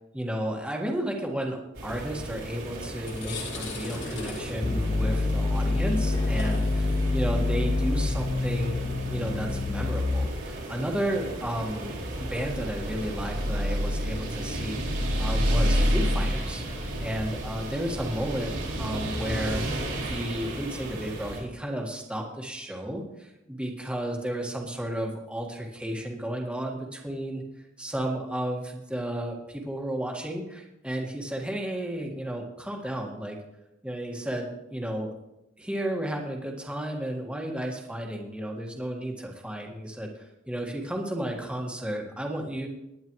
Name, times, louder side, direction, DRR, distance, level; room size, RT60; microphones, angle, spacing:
voice 1, 0.1-8.8 9.1-27.4 27.8-33.4 33.8-35.1 35.6-42.7, right 1 dB, 5° right, 0 dB, 1.7 m, -33 dB
sound 1, 1.8-21.4, equal, 75° right, 3.7 m, -31 dB
sound 2, 3.0-10.2, left 3 dB, 70° left, 2.7 m, -41 dB
sound 3, 4.6-10.6, left 2 dB, 25° left, 0.6 m, -27 dB
20.0 x 9.7 x 3.2 m, 0.88 s
head